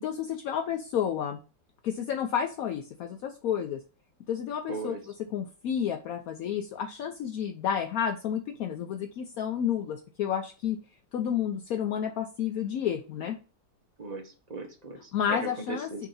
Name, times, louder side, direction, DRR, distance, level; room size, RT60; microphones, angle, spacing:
voice 1, 0.0-1.4 1.8-3.8 4.3-5.0 5.3-10.8 11.1-13.3 15.1-16.1, left 8 dB, 75° left, 5 dB, 0.8 m, -31 dB
voice 2, 4.7-5.0 14.0-16.1, right 3 dB, 40° right, 3 dB, 0.6 m, -38 dB
6.1 x 2.8 x 5.4 m, 0.34 s
omnidirectional pair, 2.0 m